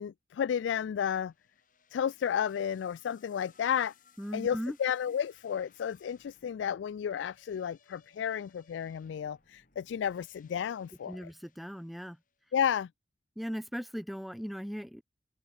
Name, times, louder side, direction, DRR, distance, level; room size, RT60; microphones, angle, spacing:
voice 1, 0.0-1.3 1.9-3.9 4.3-11.3 12.5-12.9, left 8 dB, 85° left, 0.3 m, -32 dB
sound 1, 1.1-12.4, left 6 dB, 45° left, 4.3 m, -65 dB
voice 2, 4.2-4.8 11.1-12.2 13.4-15.0, equal, ahead, 1.0 m, -38 dB
open air
head